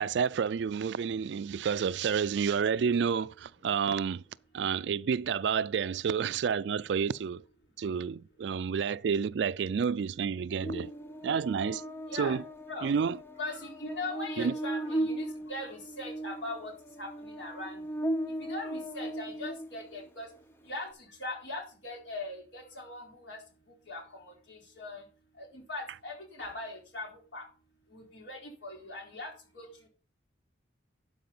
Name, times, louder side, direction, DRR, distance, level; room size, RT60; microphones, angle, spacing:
voice 1, 0.0-4.2 4.5-7.4 7.8-10.9 11.2-11.8 12.1-12.4 12.8-13.2 14.4-14.5, right 6 dB, 70° right, 0.3 m, -29 dB
Buzz, 10.6-20.1, right 1 dB, 10° left, 0.6 m, -37 dB
voice 2, 12.1-12.4 12.7-12.9 13.4-16.7 17.0-17.8 18.4-20.3 20.7-23.4 23.9-25.0 25.4-27.4 27.9-29.7, left 2 dB, 80° left, 3.8 m, -40 dB
12.0 x 4.7 x 5.4 m
head